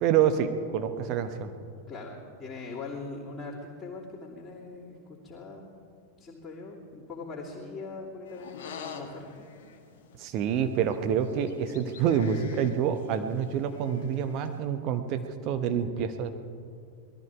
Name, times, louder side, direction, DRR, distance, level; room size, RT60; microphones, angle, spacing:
voice 1, 0.0-1.5 10.2-16.3, right 8 dB, 40° right, 8 dB, 1.1 m, -27 dB
voice 2, 1.9-5.6 6.2-9.5, left 3 dB, 20° left, -9 dB, 2.9 m, -41 dB
sound 1, 8.3-14.6, left 6 dB, 55° left, 1.6 m, -47 dB
20.0 x 13.5 x 4.8 m, 2.3 s
figure-of-eight pair, 90°, 0 cm